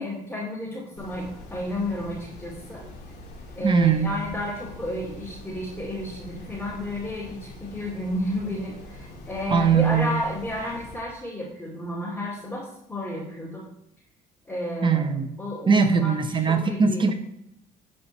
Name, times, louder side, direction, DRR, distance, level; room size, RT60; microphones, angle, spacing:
voice 1, 0.0-2.9 3.5-13.6 14.4-15.1 15.4-17.1, left 1 dB, 10° left, -6 dB, 2.6 m, -32 dB
sound 1, 1.0-11.0, left 1 dB, 70° left, 2.4 m, -43 dB
voice 2, 3.6-4.1 9.5-10.2 14.8-15.3 15.7-17.1, right 5 dB, 30° right, 8 dB, 0.8 m, -20 dB
11.0 x 4.3 x 4.4 m, 0.79 s
cardioid pair, 110°, 17 cm